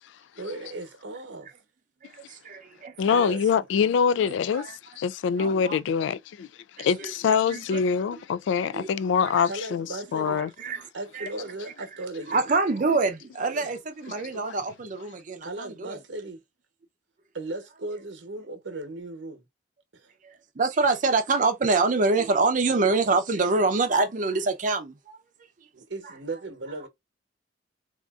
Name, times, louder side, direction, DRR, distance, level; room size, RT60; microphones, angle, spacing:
voice 1, 0.3-1.5 3.0-3.7 9.5-10.4 10.9-12.6 13.5-13.7 15.4-16.4 17.3-19.5 19.9-20.1 25.7-26.9, right 2 dB, 85° right, 0.9 m, -37 dB
voice 2, 2.0-2.9 4.5-4.7 5.4-5.8 6.8-6.9 7.3-7.8 8.7-8.9 9.2-9.3 10.3-10.8 11.1-11.3 12.3-16.0 20.2-25.2, right 3 dB, 45° right, 0.5 m, -26 dB
voice 3, 3.0-6.5 6.8-9.9 10.1-10.5 14.3-14.5, left 6 dB, 80° left, 0.3 m, -24 dB
3.7 x 2.5 x 2.3 m
head